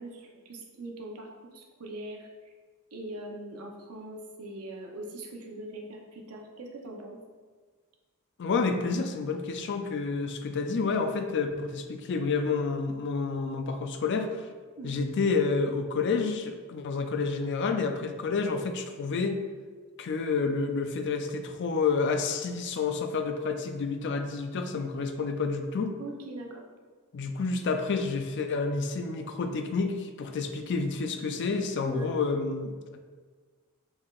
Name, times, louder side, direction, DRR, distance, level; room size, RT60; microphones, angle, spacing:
voice 1, 0.0-2.5 2.9-7.2 14.8-15.1 26.0-26.6 31.8-32.1, right 1 dB, 80° right, 1 dB, 0.7 m, -41 dB
voice 2, 8.4-14.5 14.8-19.4 20.0-26.0 27.1-33.0, left 4 dB, 55° left, 6 dB, 0.4 m, -29 dB
5.5 x 3.5 x 2.4 m, 1.5 s
head